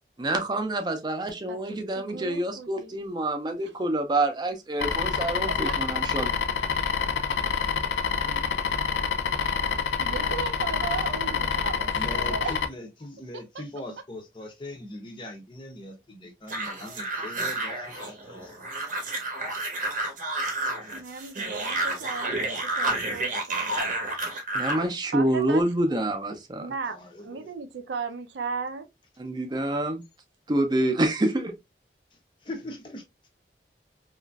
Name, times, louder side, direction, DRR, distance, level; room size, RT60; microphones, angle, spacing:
voice 1, 0.2-6.3 24.5-26.7 29.2-30.0 30.5-31.5, right 1 dB, 25° right, 0.4 m, -27 dB
voice 2, 1.5-3.0 5.7-5.8 10.0-12.7 13.3-13.6 20.9-23.7 25.1-25.6 26.6-28.9, right 4 dB, 90° right, 0.4 m, -36 dB
sound 1, 4.8-12.7, left 6 dB, 90° left, 0.4 m, -27 dB
voice 3, 8.1-8.6 10.8-11.3 11.9-18.6 26.9-27.5 32.4-33.0, left 1 dB, 25° left, 0.5 m, -41 dB
sound 2, 16.5-24.9, right 2 dB, 45° right, 0.7 m, -30 dB
2.9 x 2.4 x 2.2 m
head